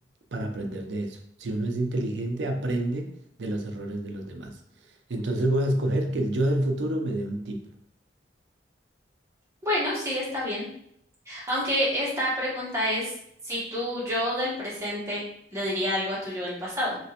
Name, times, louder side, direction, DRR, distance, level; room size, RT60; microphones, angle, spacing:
voice 1, 0.3-4.6 5.1-7.7, right 1 dB, 90° right, 4 dB, 0.6 m, -28 dB
voice 2, 9.6-10.6 11.3-13.1 13.4-15.2 15.5-17.0, equal, 15° right, -7 dB, 1.2 m, -28 dB
3.2 x 2.9 x 2.8 m, 0.69 s
head